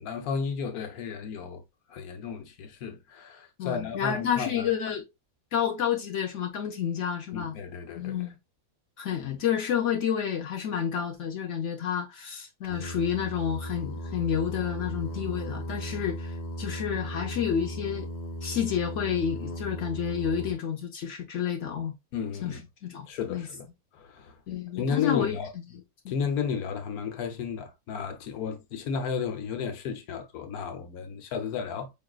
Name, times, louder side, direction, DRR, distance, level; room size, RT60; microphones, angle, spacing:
voice 1, 0.0-1.6 1.9-4.7 7.3-8.2 22.1-22.6 23.1-24.3 24.7-25.5 26.1-31.9, left 6 dB, 85° left, 1.2 m, -33 dB
voice 2, 3.6-5.1 5.5-7.6 8.0-8.3 9.0-18.1 18.4-21.9 22.4-23.5 24.5-25.3 26.0-26.1, left 8 dB, 65° left, 0.9 m, -30 dB
Singing, 12.6-20.5, equal, 50° left, 0.5 m, -36 dB
4.7 x 3.1 x 2.3 m
omnidirectional pair, 1.5 m